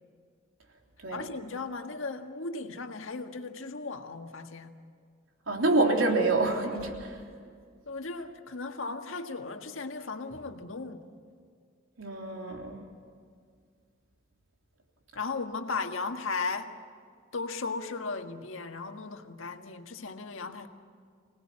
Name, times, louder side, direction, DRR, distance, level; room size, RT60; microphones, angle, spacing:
voice 1, 1.1-4.8 7.9-11.1 15.1-16.7 17.3-20.7, left 4 dB, 80° left, 5 dB, 1.7 m, -36 dB
voice 2, 5.5-7.2 12.0-12.8, right 2 dB, 85° right, 1 dB, 3.5 m, -27 dB
25.5 x 19.0 x 8.8 m, 2.1 s
head